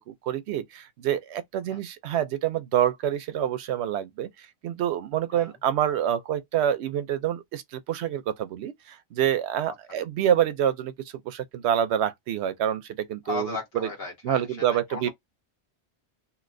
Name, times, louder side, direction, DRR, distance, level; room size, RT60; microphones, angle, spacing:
voice 1, 0.0-10.9 11.2-13.9 14.2-15.1, right 10 dB, 90° right, 0.8 m, -27 dB
voice 2, 13.2-15.1, left 3 dB, 70° left, 1.5 m, -36 dB
3.0 x 2.7 x 2.5 m
omnidirectional pair, 1.1 m